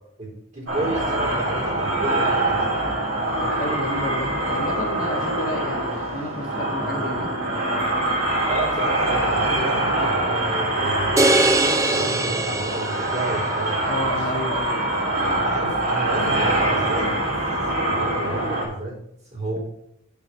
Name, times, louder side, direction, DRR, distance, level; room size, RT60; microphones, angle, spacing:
voice 1, 0.2-2.9 8.3-14.0 14.3-14.4 15.4-17.1 17.9-19.0 19.3-19.6, right 1 dB, 30° right, -5 dB, 4.0 m, -31 dB
sound 1, 0.7-18.7, right 1 dB, 60° right, 3.2 m, -24 dB
voice 2, 3.4-7.3 13.9-14.9, left 1 dB, 40° left, 1 dB, 1.2 m, -31 dB
sound 2, 11.2-13.5, right 2 dB, 15° right, 0.4 m, -21 dB
7.2 x 4.8 x 7.1 m, 0.74 s
head